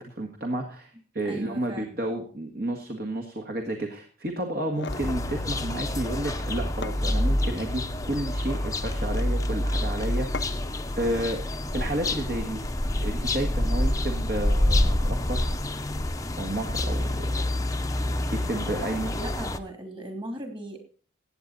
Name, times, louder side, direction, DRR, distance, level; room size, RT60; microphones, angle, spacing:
voice 1, 0.0-10.7 10.9-11.4 11.7-12.6 13.0-15.5 16.3-17.3 18.4-19.1, right 1 dB, 50° right, 4 dB, 1.8 m, -31 dB
voice 2, 1.2-1.9 19.2-20.8, right 1 dB, 25° right, 4 dB, 2.9 m, -38 dB
sound 1, 4.5-5.1 6.4-6.5 6.8-7.6 8.3-8.7 10.3-10.8, left 4 dB, 60° left, 0.6 m, -39 dB
sound 2, 4.9-19.6, left 1 dB, 15° left, 0.7 m, -27 dB
16.0 x 8.8 x 4.1 m, 0.41 s
head